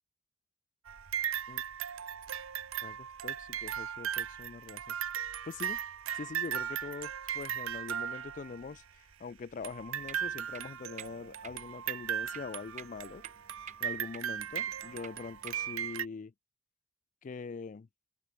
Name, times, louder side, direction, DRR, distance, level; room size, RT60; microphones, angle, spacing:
sound 1, 0.9-8.8 9.6-16.1, right 9 dB, 70° right, 0.8 m, -37 dB
voice 1, 2.8-5.0 5.5-5.8 6.1-13.2 13.8-16.3 17.2-17.9, left 4 dB, 35° left, 0.3 m, -43 dB
sound 2, 10.0-15.9, right 8 dB, 35° right, 0.6 m, -51 dB
open air
head